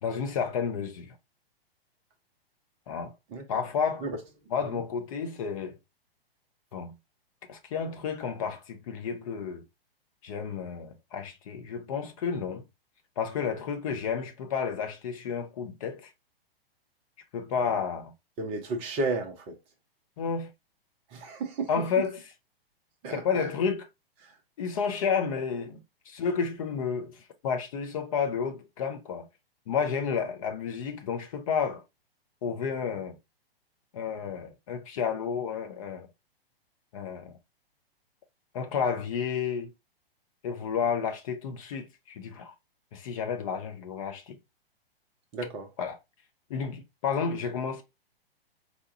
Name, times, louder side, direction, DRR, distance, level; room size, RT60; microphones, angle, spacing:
voice 1, 0.0-1.2 2.9-3.1 3.5-4.1 4.5-5.8 6.7-6.9 7.5-9.6 10.2-12.6 13.2-16.1 17.3-18.1 20.2-20.5 21.7-22.2 23.1-23.9 24.6-29.3 29.7-31.8 32.4-33.2 33.9-36.1 36.9-37.4 38.5-39.7 40.4-42.5 42.9-44.4 45.8-46.0 46.5-47.8, left 6 dB, 35° left, 0.6 m, -31 dB
voice 2, 18.4-19.6 21.1-21.7 23.0-23.5 24.2-24.3 45.3-45.7, right 3 dB, 20° right, 0.5 m, -33 dB
4.2 x 2.3 x 2.7 m
figure-of-eight pair, 110°, 30 cm